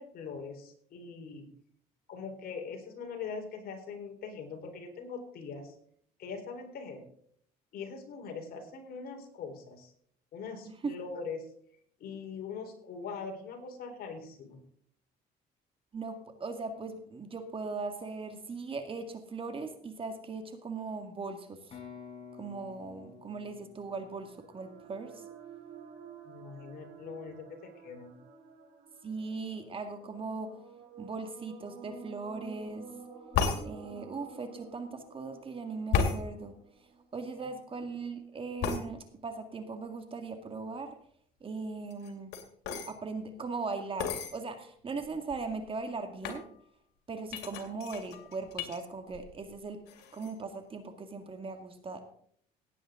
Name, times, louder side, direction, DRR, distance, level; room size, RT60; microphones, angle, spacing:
voice 1, 0.0-1.5 2.1-5.7 6.2-7.0 7.7-9.9 10.3-11.5 12.0-14.6 26.3-28.2, left 5 dB, 65° left, 3 dB, 4.0 m, -42 dB
voice 2, 15.9-21.7 22.4-25.2 29.0-30.5 31.0-32.9 33.6-36.6 37.1-41.0 41.4-42.3 42.7-46.5 47.1-49.8 50.1-52.0, right 4 dB, 30° right, 7 dB, 2.0 m, -39 dB
sound 1, 21.7-25.5, left 6 dB, 35° left, 5.6 m, -51 dB
sound 2, 23.9-37.5, right 5 dB, 85° right, 4.3 m, -51 dB
sound 3, 33.3-33.6 35.9-36.2 38.6-38.8 41.9-42.9 44.0-44.3 45.0-45.1 45.3-45.7 46.2-46.4 47.3-48.8 49.1-49.6 49.9-50.3, left 6 dB, 90° left, 2.5 m, -32 dB
17.5 x 9.2 x 3.8 m, 0.62 s
cardioid pair, 110°, 17 cm